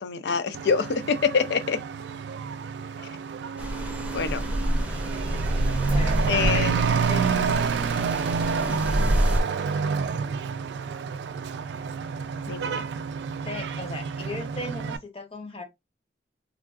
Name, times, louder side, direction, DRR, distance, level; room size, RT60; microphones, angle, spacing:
voice 1, 0.0-1.8 4.1-4.4 6.3-6.7 8.7-9.0 12.5-12.8, left 5 dB, 65° left, 0.4 m, -26 dB
Truck / Accelerating revving vroom, 0.5-15.0, right 6 dB, 70° right, 0.3 m, -29 dB
sound 1, 3.6-9.4, equal, 5° right, 0.6 m, -27 dB
voice 2, 5.6-7.6 13.4-15.6, left 2 dB, 30° left, 0.8 m, -38 dB
3.6 x 2.3 x 2.3 m
head